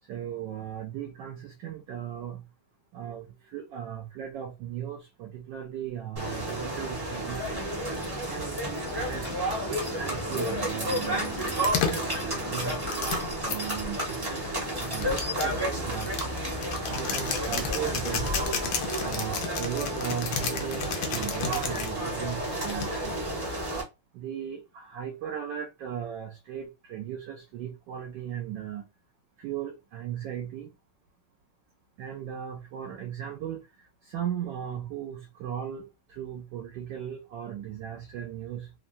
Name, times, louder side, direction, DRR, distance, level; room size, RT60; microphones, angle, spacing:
voice 1, 0.0-2.5 2.9-7.7 8.2-9.4 10.0-16.1 16.8-18.4 19.0-23.4 24.1-28.9 29.4-30.7 32.0-38.7, right 9 dB, 75° right, 1.1 m, -37 dB
sound 1, 6.2-23.8, right 1 dB, 20° right, 0.7 m, -31 dB
sound 2, 8.8-19.0, left 7 dB, 70° left, 0.8 m, -45 dB
sound 3, 11.4-13.6 14.4-21.9 22.7-23.2, left 6 dB, 85° left, 1.5 m, -32 dB
3.6 x 2.2 x 2.5 m
omnidirectional pair, 2.3 m